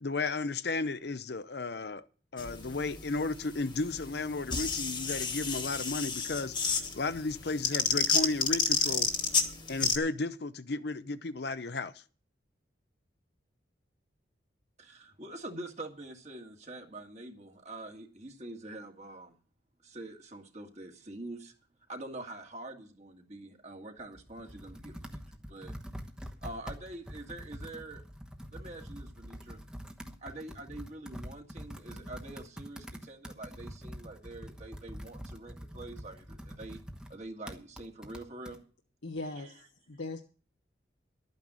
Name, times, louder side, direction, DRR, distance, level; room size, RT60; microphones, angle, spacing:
voice 1, 0.0-2.0 2.3-9.1 9.7-11.9, left 3 dB, 60° left, 0.7 m, -34 dB
sound 1, 2.4-10.0, left 5 dB, 25° left, 1.4 m, -31 dB
voice 2, 14.8-19.3 19.8-21.5 21.9-25.2 25.5-25.7 26.4-28.0 28.5-29.6 30.2-36.8 37.1-38.6 39.4-39.5, right 2 dB, 35° right, 2.0 m, -45 dB
Computer keyboard, 24.0-38.6, equal, 5° right, 1.1 m, -45 dB
voice 3, 39.0-40.2, left 2 dB, 85° left, 1.3 m, -39 dB
12.5 x 9.4 x 6.2 m
head